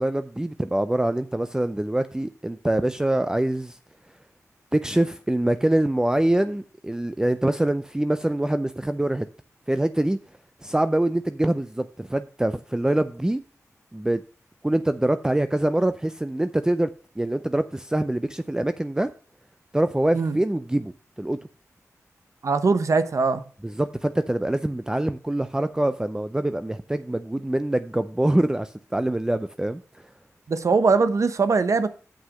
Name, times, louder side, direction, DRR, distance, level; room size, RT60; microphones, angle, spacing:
voice 1, 0.0-3.8 4.7-9.3 9.7-10.2 10.6-13.4 13.9-14.2 14.6-16.9 17.2-19.1 19.7-21.4 23.6-30.1, right 1 dB, 10° right, 0.4 m, -24 dB
voice 2, 22.4-23.4 30.5-31.9, right 4 dB, 60° right, 0.9 m, -21 dB
7.6 x 5.8 x 6.3 m
cardioid pair, 55°, 6 cm